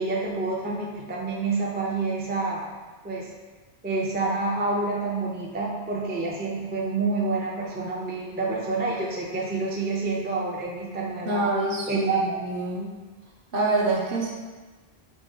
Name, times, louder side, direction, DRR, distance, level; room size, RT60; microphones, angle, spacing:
voice 1, 0.0-2.7 3.0-3.3 3.8-11.5 11.9-12.2, right 3 dB, 15° right, -3 dB, 0.4 m, -28 dB
voice 2, 11.2-12.1 12.4-12.9 13.5-14.3, right 2 dB, 60° right, -3 dB, 0.9 m, -25 dB
3.7 x 3.0 x 4.0 m, 1.3 s
omnidirectional pair, 1.1 m